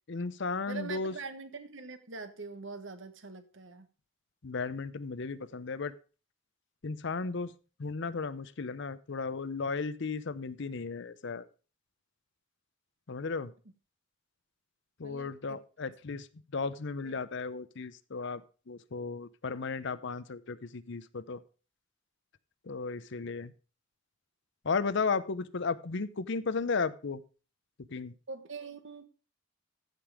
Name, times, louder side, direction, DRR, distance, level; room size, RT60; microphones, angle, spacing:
voice 1, 0.1-1.1 4.4-5.9 6.8-7.5 7.8-11.5 13.1-13.5 15.0-16.3 16.5-18.4 18.7-21.4 22.7-23.5 24.6-27.2 27.9-28.1, left 4 dB, 65° left, 0.7 m, -34 dB
voice 2, 0.7-3.9 15.0-15.6 17.0-17.2 28.3-29.0, right 4 dB, 70° right, 1.3 m, -43 dB
15.0 x 5.4 x 4.8 m
head